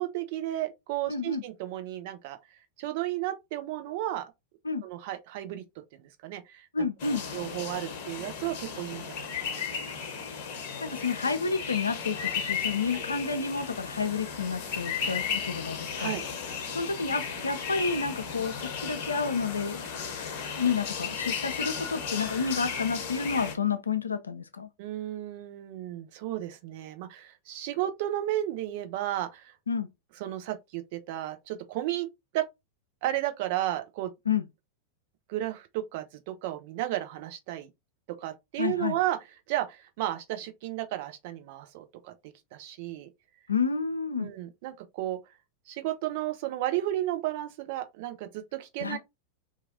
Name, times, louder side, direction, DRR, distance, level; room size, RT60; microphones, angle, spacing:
voice 1, 0.0-2.4 2.8-4.2 4.8-5.6 6.0-6.9 7.3-9.9 12.9-13.0 16.0-16.2 24.8-29.5 30.2-32.1 32.3-32.4 33.0-34.1 35.3-37.7 38.2-39.2 39.5-42.1 42.5-43.1 44.2-45.2 45.7-49.0, right 14 dB, 50° right, 0.5 m, -33 dB
voice 2, 1.1-1.4 4.6-4.8 6.7-7.2 10.8-12.2 12.5-16.2 16.7-19.9 20.6-24.7 29.7-29.9 34.3-34.5 38.6-39.0 43.5-44.3 48.8-49.0, left 5 dB, 75° left, 0.4 m, -30 dB
sound 1, 7.0-23.5, left 6 dB, 50° left, 0.8 m, -35 dB
2.8 x 2.4 x 2.5 m
figure-of-eight pair, 90°, 0 cm